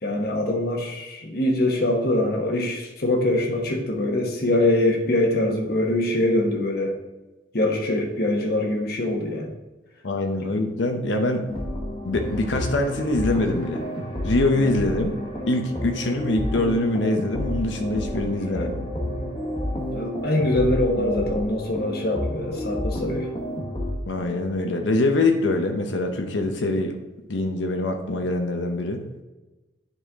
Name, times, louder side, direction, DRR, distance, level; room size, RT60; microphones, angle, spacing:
voice 1, 0.0-7.0 7.5-9.5 19.9-23.3, left 1 dB, 55° left, 2 dB, 1.2 m, -23 dB
voice 2, 10.0-11.5 12.0-13.8 14.2-15.2 15.5-18.8 24.1-27.0 27.3-29.0, left 2 dB, 75° left, 5 dB, 0.8 m, -24 dB
sound 1, 11.5-23.9, equal, 30° left, 1.3 m, -30 dB
9.9 x 4.2 x 3.6 m, 1.1 s
head